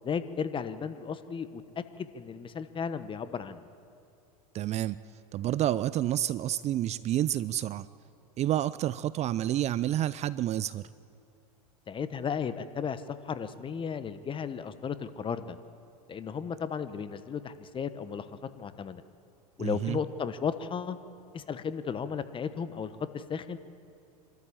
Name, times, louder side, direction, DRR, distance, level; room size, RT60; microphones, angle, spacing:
voice 1, 0.0-1.6 2.0-3.7 11.9-15.6 16.1-18.3 18.6-19.0 19.6-21.0 21.3-23.6, left 6 dB, 25° left, 12 dB, 1.1 m, -34 dB
voice 2, 4.5-5.0 5.3-7.9 8.4-10.8 19.6-20.0, right 12 dB, 35° right, 17 dB, 0.5 m, -29 dB
26.0 x 13.0 x 8.7 m, 2.5 s
hypercardioid pair, 95°, 20 cm